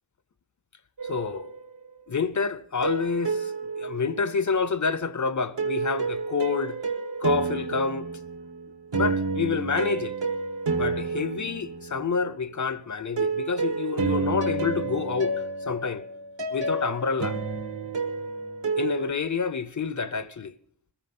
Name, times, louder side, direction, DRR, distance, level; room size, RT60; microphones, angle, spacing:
voice 1, 1.0-1.5 2.1-6.8 7.2-8.1 8.9-10.1 10.8-15.4 15.7-16.0 16.5-17.4 18.8-20.5, left 5 dB, 40° left, 0.7 m, -28 dB
sound 1, 1.0-2.0 2.8-4.7 5.6-12.3 13.2-19.1, right 4 dB, 70° right, 1.7 m, -30 dB
21.5 x 14.5 x 4.2 m
wide cardioid pair, 60°, 45 cm